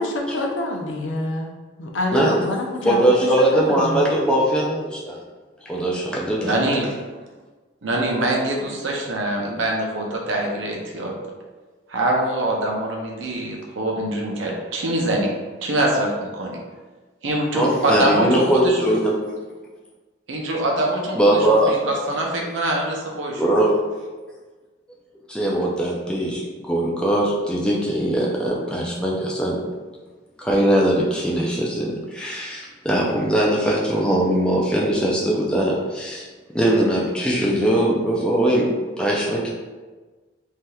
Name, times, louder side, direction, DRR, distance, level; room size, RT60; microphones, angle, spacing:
voice 1, 0.0-1.5 1.8-4.1, left 1 dB, 80° left, 2 dB, 0.5 m, -26 dB
voice 2, 2.8-5.2 5.7-6.6 17.5-19.3 21.1-21.8 23.4-23.8 25.3-29.6 30.4-36.3 36.5-38.7 39.0-39.5, right 1 dB, 5° left, -4 dB, 0.4 m, -20 dB
voice 3, 6.4-6.8 7.8-11.1 11.9-15.3 15.6-16.6 17.2-18.8 20.3-21.4 21.7-23.4, right 1 dB, 80° right, 0 dB, 0.6 m, -24 dB
3.3 x 2.8 x 2.3 m, 1.3 s
head